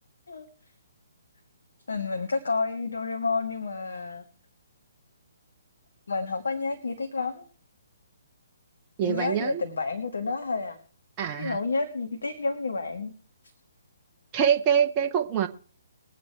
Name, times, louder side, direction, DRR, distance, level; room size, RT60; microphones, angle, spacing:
voice 1, 1.9-4.2 6.1-7.4 9.0-10.8 11.4-13.1, left 4 dB, 65° left, 1.5 m, -30 dB
voice 2, 9.0-9.6 11.2-11.6 14.3-15.5, right 8 dB, 25° right, 0.8 m, -24 dB
21.5 x 8.5 x 3.4 m
figure-of-eight pair, 130°, 0 cm